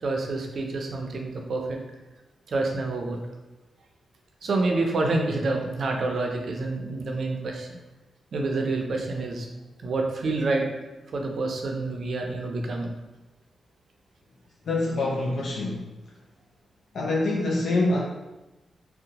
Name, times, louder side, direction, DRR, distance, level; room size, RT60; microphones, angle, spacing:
voice 1, 0.0-1.8 2.5-3.2 4.4-7.7 8.3-9.5 9.8-10.6 11.1-12.9, right 2 dB, 65° right, 1 dB, 0.4 m, -27 dB
voice 2, 14.6-15.9 16.9-18.0, left 2 dB, 75° left, -3 dB, 0.3 m, -25 dB
2.7 x 2.1 x 2.8 m, 1.1 s
cardioid pair, 80°, 0 cm